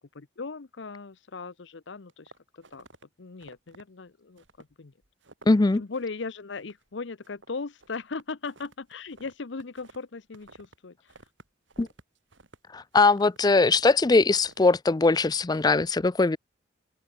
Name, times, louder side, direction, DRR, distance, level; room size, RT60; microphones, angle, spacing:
voice 1, 0.1-2.9 3.2-4.9 5.8-11.1, left 4 dB, 65° left, 0.8 m, -38 dB
sound 1, 2.1-3.0 3.4-3.8 4.4-4.8 5.0-5.6 5.9-6.2 6.5-6.9 7.2-10.8 11.1-13.9 14.3-14.6 15.0-15.5, right 3 dB, 75° right, 4.0 m, -54 dB
voice 2, 5.5-5.8 11.8-11.9 12.7-16.4, left 3 dB, 20° left, 0.4 m, -21 dB
head